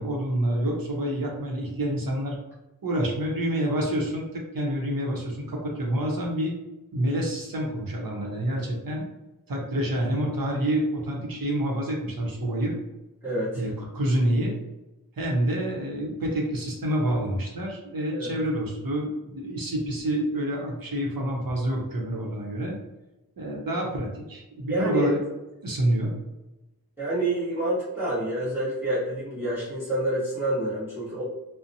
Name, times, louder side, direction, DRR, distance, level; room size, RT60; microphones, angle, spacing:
voice 1, 0.0-2.4 2.8-6.5 6.9-9.0 9.5-12.7 13.5-14.5 15.2-22.7 23.4-25.2 25.6-26.1, right 1 dB, 65° right, -1 dB, 0.7 m, -27 dB
voice 2, 13.2-13.6 18.1-18.4 24.7-25.1 27.0-31.2, right 1 dB, 5° right, -9 dB, 0.9 m, -28 dB
2.7 x 2.0 x 2.6 m, 1.0 s
wide cardioid pair, 60°, 37 cm